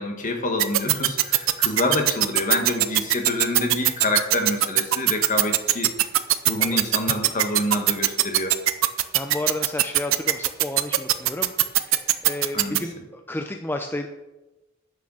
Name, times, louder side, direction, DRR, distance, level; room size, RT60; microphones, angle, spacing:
voice 1, 0.0-5.9 6.4-8.5 12.5-12.8, left 2 dB, 40° left, 4 dB, 1.4 m, -27 dB
sound 1, 0.6-12.8, right 15 dB, 70° right, 0.6 m, -19 dB
voice 2, 6.6-7.0 9.1-11.9 12.2-14.1, left 1 dB, 10° left, 5 dB, 0.5 m, -32 dB
9.5 x 6.4 x 6.2 m, 1.0 s
head